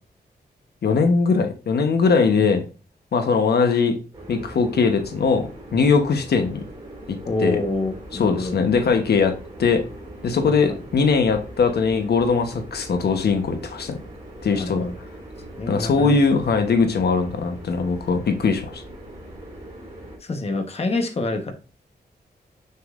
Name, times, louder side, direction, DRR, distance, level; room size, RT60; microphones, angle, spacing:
voice 1, 0.8-2.6 3.1-3.9 4.3-6.6 7.1-7.6 8.1-9.8 10.2-14.0 14.4-14.8 15.7-18.8, left 5 dB, 65° left, 6 dB, 1.0 m, -20 dB
sound 1, 4.1-20.2, right 1 dB, 20° right, 3.6 m, -40 dB
voice 2, 7.2-8.6 10.5-10.6 14.5-14.9 15.6-16.4 20.2-21.5, left 2 dB, 35° left, 5 dB, 1.1 m, -27 dB
7.0 x 6.6 x 2.5 m, 0.33 s
wide cardioid pair, 180°, 18 cm